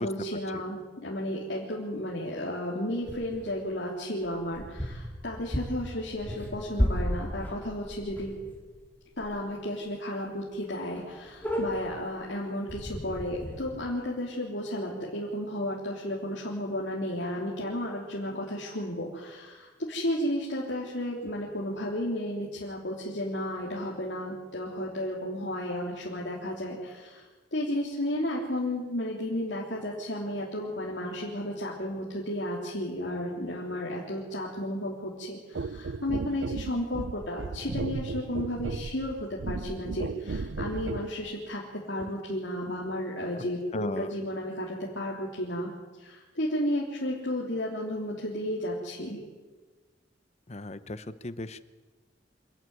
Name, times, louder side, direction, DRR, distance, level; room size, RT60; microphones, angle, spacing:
voice 1, 0.0-8.3 9.2-41.6 41.9-45.7 46.0-49.2, left 1 dB, 70° left, -4 dB, 3.4 m, -33 dB
sound 1, 3.1-3.5 4.2-8.8 9.2-9.4 9.7-9.8 10.2-10.3 10.5-10.7 11.0-12.1 12.7-13.6, equal, 10° left, 4.3 m, -33 dB
sound 2, 35.5-41.1 42.0-42.1, right 3 dB, 80° right, 0.6 m, -35 dB
voice 2, 43.7-44.1 50.5-51.7, left 2 dB, 35° left, 13 dB, 0.9 m, -36 dB
26.0 x 13.0 x 9.5 m, 1.3 s
head